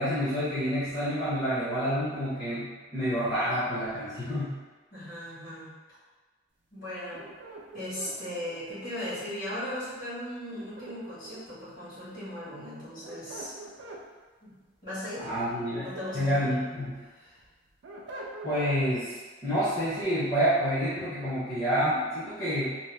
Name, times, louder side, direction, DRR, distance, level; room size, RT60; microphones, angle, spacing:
voice 1, 0.0-4.5 15.2-15.9 16.1-17.0 18.4-19.2 19.4-22.8, equal, 20° left, -12 dB, 0.7 m, -28 dB
voice 2, 4.9-5.7 6.7-7.2 7.7-13.6 14.4-14.5 14.8-15.3 15.8-16.5 17.1-17.4, left 1 dB, 50° left, -11 dB, 1.4 m, -37 dB
sound 1, 7.1-9.2 10.5-11.6 12.8-14.0 15.4-16.6 17.0-18.8, right 2 dB, 65° right, 0.4 m, -44 dB
2.7 x 2.0 x 3.2 m, 1.3 s
head